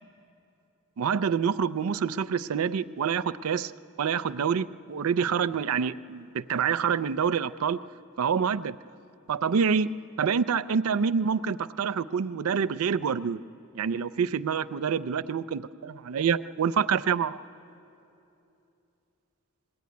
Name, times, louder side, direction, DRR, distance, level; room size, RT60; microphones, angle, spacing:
voice 1, 1.0-3.7 4.0-7.8 8.2-8.8 9.3-9.9 10.2-13.4 13.7-17.4, right 6 dB, 85° right, 15 dB, 0.4 m, -27 dB
20.0 x 16.0 x 9.4 m, 2.9 s
head